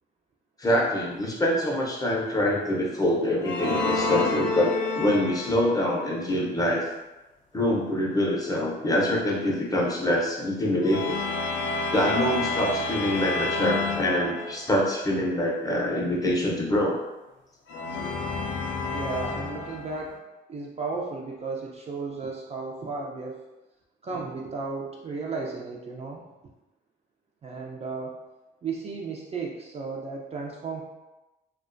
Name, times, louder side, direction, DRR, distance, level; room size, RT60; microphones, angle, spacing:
voice 1, 0.6-6.9 7.5-11.2 11.9-17.0, left 1 dB, 20° left, -3 dB, 0.5 m, -25 dB
sound 1, 3.4-5.8 10.8-14.8 17.7-20.1, left 3 dB, 65° left, 0.5 m, -29 dB
voice 2, 18.9-20.2 20.5-23.4 24.0-26.2 27.4-28.1 28.6-30.8, right 4 dB, 30° right, -2 dB, 0.4 m, -34 dB
2.4 x 2.2 x 2.4 m, 1.0 s
cardioid pair, 90°, 20 cm